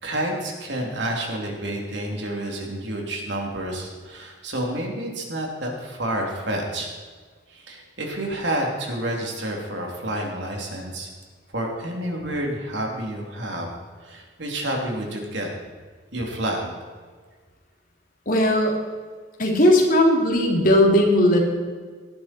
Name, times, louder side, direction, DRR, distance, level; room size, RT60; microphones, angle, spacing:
voice 1, 0.0-6.9 7.5-11.1 11.5-13.7 14.0-15.5 16.1-16.7, right 1 dB, 70° right, 0 dB, 3.1 m, -29 dB
voice 2, 18.2-18.8 19.4-21.4, left 1 dB, 45° left, -1 dB, 3.0 m, -17 dB
18.5 x 11.5 x 4.5 m, 1.5 s
head